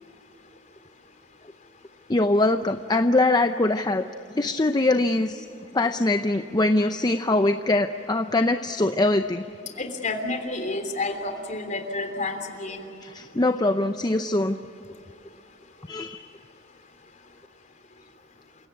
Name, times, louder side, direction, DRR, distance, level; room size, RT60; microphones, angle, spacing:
voice 1, 2.1-4.1 4.3-5.5 5.7-9.4 13.0-14.6 15.9-16.3, left 2 dB, 20° left, 8 dB, 0.6 m, -22 dB
voice 2, 9.8-12.9, left 2 dB, 40° left, 5 dB, 3.3 m, -30 dB
28.5 x 17.5 x 9.8 m, 2.7 s
head